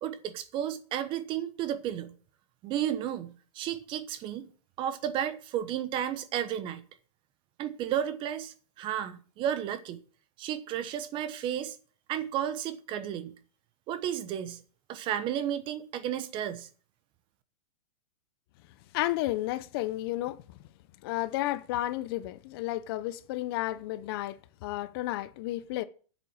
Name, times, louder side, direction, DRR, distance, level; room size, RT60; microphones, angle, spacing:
voice 1, 0.0-2.1 2.6-4.5 4.8-6.8 7.6-10.0 10.4-11.8 12.1-13.3 13.9-14.6 14.9-16.7, right 10 dB, 25° right, 1.0 m, -33 dB
voice 2, 18.9-20.4 21.0-25.8, left 16 dB, 40° left, 0.7 m, -32 dB
8.7 x 7.6 x 8.6 m
hypercardioid pair, 150°, 19 cm